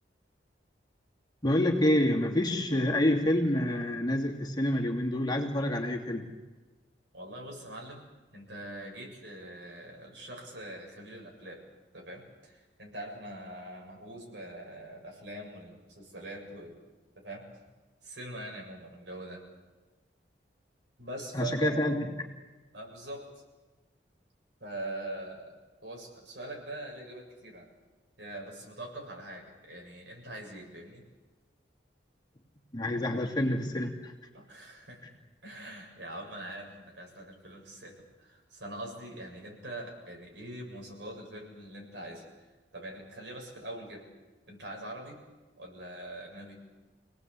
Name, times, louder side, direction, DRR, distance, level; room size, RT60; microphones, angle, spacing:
voice 1, 1.4-6.3 21.3-22.1 32.7-34.1, left 1 dB, 25° left, 1 dB, 2.6 m, -27 dB
voice 2, 7.1-8.1 8.3-11.6 11.9-16.8 17.2-17.6 18.0-19.4 21.0-21.9 22.7-23.4 24.6-27.7 28.2-31.0 34.3-44.1 44.5-45.2 45.6-46.6, right 1 dB, 75° right, 0 dB, 7.4 m, -43 dB
27.5 x 18.5 x 8.4 m, 1.3 s
head